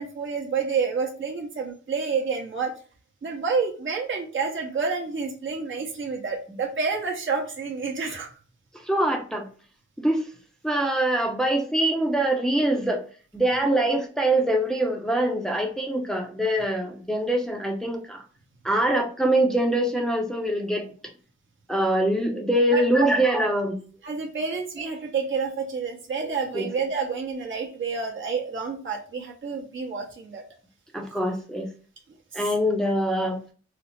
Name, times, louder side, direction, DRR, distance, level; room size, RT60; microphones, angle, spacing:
voice 1, 0.0-2.8 3.2-8.3 13.8-13.9 22.7-23.1 23.6-23.7 24.0-30.4, right 5 dB, 45° right, -2 dB, 0.9 m, -29 dB
voice 2, 8.8-9.5 10.0-10.2 10.6-13.0 13.3-18.2 18.6-20.9 21.7-23.8 26.5-26.7 30.9-31.7 32.3-33.4, right 1 dB, ahead, 1 dB, 0.7 m, -24 dB
4.2 x 2.0 x 3.0 m, 0.40 s
cardioid pair, 50°, 29 cm